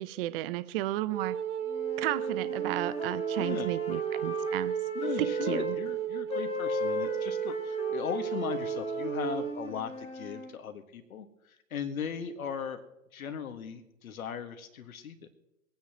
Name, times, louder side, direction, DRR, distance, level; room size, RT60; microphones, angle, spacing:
voice 1, 0.0-1.4 2.0-4.7 5.2-5.8, right 15 dB, 40° right, 15 dB, 0.7 m, -33 dB
Wind instrument woodwind instrument, 1.1-9.6, right 11 dB, 80° right, 0.7 m, -34 dB
sound 1, 1.7-5.8 6.3-10.5, left 3 dB, 15° left, 1.6 m, -38 dB
voice 2, 3.4-3.7 4.9-11.3 11.7-12.8 13.1-15.3, left 7 dB, 70° left, 7 dB, 1.8 m, -38 dB
24.5 x 9.4 x 3.0 m, 0.88 s
hypercardioid pair, 115°, 44 cm